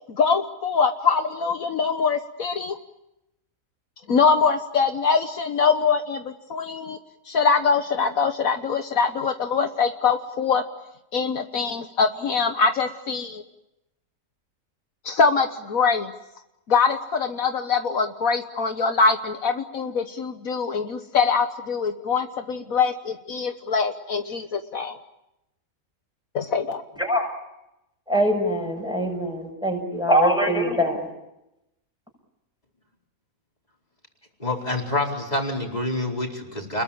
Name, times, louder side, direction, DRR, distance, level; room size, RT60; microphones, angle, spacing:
voice 1, 0.1-2.8 4.1-7.0 7.3-10.6 11.1-13.4 15.1-16.1 16.7-25.0 26.4-26.8, left 5 dB, 70° left, 7 dB, 1.6 m, -23 dB
voice 2, 28.1-31.1, equal, 5° right, 2 dB, 6.8 m, -23 dB
voice 3, 34.4-36.8, left 1 dB, 25° left, 0 dB, 4.7 m, -27 dB
30.0 x 21.5 x 8.8 m, 0.90 s
omnidirectional pair, 1.5 m